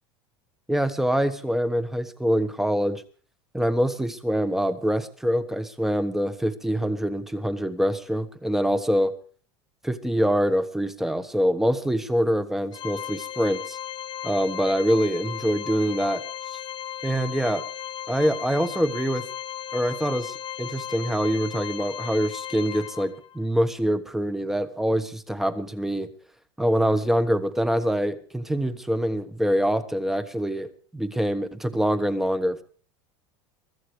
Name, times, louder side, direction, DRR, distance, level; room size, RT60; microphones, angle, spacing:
voice 1, 0.7-3.0 3.5-9.1 9.8-13.8 14.2-16.2 17.0-17.6 18.1-19.2 19.7-26.1 26.6-32.6, equal, 5° right, 11 dB, 1.2 m, -25 dB
Organ, 12.7-23.4, left 10 dB, 40° left, 1.0 m, -36 dB
23.5 x 14.0 x 3.3 m, 0.43 s
supercardioid pair, 115°, 12 cm